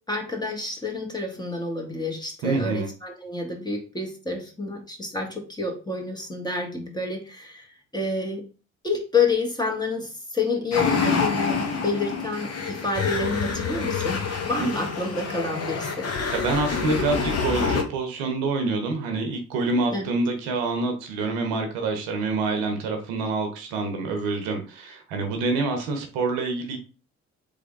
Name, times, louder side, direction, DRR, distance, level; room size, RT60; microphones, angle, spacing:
voice 1, 0.1-7.7 7.9-8.4 8.8-11.6 11.8-16.1 19.9-20.0, left 3 dB, 10° left, 1 dB, 1.2 m, -28 dB
voice 2, 2.4-2.9 14.3-14.7 16.3-26.8, right 3 dB, 75° right, 5 dB, 0.9 m, -27 dB
sound 1, 10.7-17.8, left 5 dB, 40° left, 0.9 m, -27 dB
3.3 x 3.3 x 2.6 m, 0.35 s
hypercardioid pair, 45°, 37 cm